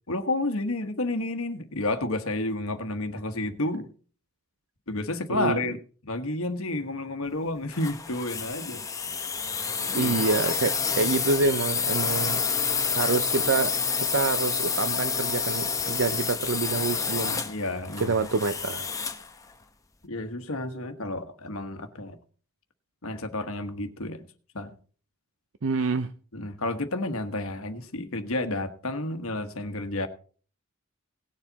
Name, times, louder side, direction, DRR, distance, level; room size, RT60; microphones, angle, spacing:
voice 1, 0.1-3.9 4.9-5.8 6.0-8.9 9.9-10.2 17.2-18.2 20.0-22.2 23.0-24.3 24.5-24.8 26.3-30.1, left 2 dB, 70° left, 1.3 m, -31 dB
voice 2, 5.3-5.6 9.9-12.4 12.9-17.4 18.0-18.9 25.6-26.1, right 4 dB, 60° right, 0.6 m, -27 dB
sound 1, 7.7-19.3, left 6 dB, 15° left, 0.9 m, -28 dB
18.0 x 7.3 x 4.0 m
head